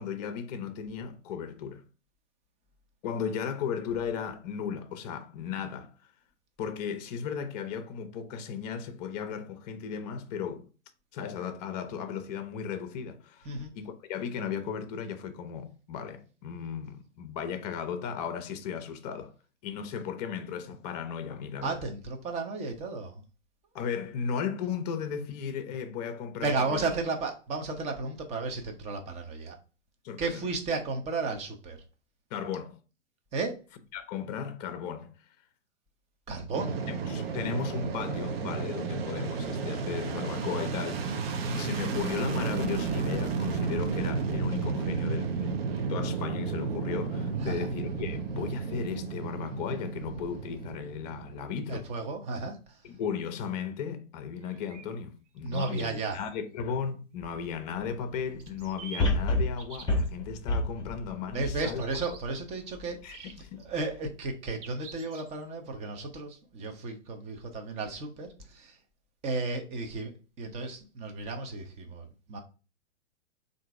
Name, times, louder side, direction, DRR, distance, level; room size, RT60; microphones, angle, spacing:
voice 1, 0.0-1.8 3.0-5.9 6.6-10.6 11.1-19.3 19.6-21.8 23.7-26.9 30.0-30.4 32.3-32.8 33.9-35.1 36.9-41.2 41.5-51.8 52.8-61.8 63.0-63.7, left 7 dB, 35° left, 0.6 m, -36 dB
voice 2, 21.6-23.2 26.4-29.6 30.2-31.8 33.3-33.6 36.3-36.8 47.4-47.7 51.7-52.8 55.4-56.2 61.3-63.3 63.6-68.8 69.2-72.4, right 3 dB, 20° right, 0.7 m, -34 dB
Fixed-wing aircraft airplane, 36.5-51.7, right 5 dB, 55° right, 0.7 m, -32 dB
sound 1, 54.4-54.8 55.5-56.3 58.4-59.1 59.6-60.1 61.6-62.2 63.1-63.6 64.5-65.4, right 6 dB, 70° right, 1.1 m, -46 dB
sound 2, 57.2-57.3 59.0-62.3 62.8-62.9, left 2 dB, 10° left, 1.0 m, -29 dB
3.7 x 2.6 x 4.6 m
hypercardioid pair, 120°, 37 cm